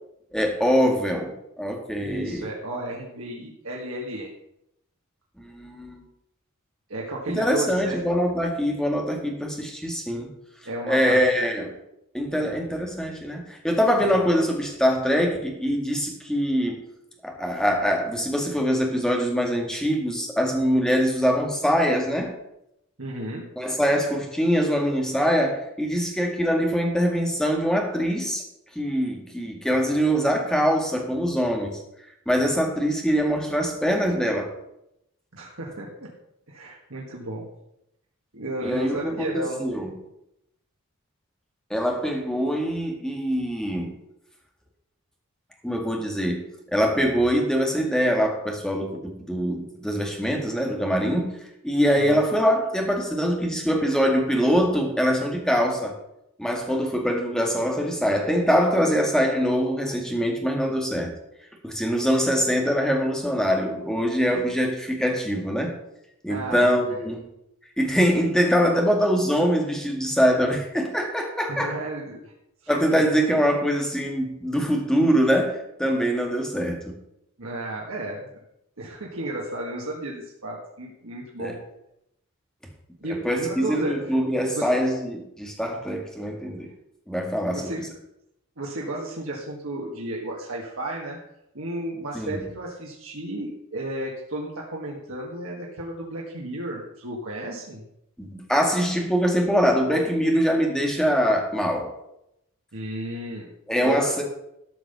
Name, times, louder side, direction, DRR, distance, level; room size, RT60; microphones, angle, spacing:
voice 1, 0.3-2.5 5.4-6.0 7.3-10.3 10.9-11.7 12.1-16.8 17.2-22.4 23.6-28.4 28.8-31.8 32.3-34.5 38.6-39.9 41.7-43.9 45.6-46.4 46.7-51.4 51.6-56.0 56.4-61.1 61.6-65.7 66.2-67.3 67.8-71.8 72.7-76.9 81.4-81.5 83.1-86.7 87.1-87.7 92.1-92.4 98.2-101.9 103.7-104.2, equal, 5° left, 1 dB, 2.0 m, -23 dB
voice 2, 2.0-4.3 6.9-8.0 10.7-11.4 12.3-12.5 23.0-23.5 35.3-36.1 36.5-37.5 38.3-39.7 51.9-52.2 66.3-67.0 71.5-72.3 72.9-73.0 73.3-73.4 77.4-78.3 78.8-81.6 83.0-84.1 84.5-84.7 87.3-87.9 88.6-91.2 91.5-97.8 102.7-104.2, right 1 dB, 75° right, -2 dB, 1.8 m, -33 dB
13.0 x 5.8 x 6.9 m, 0.81 s
head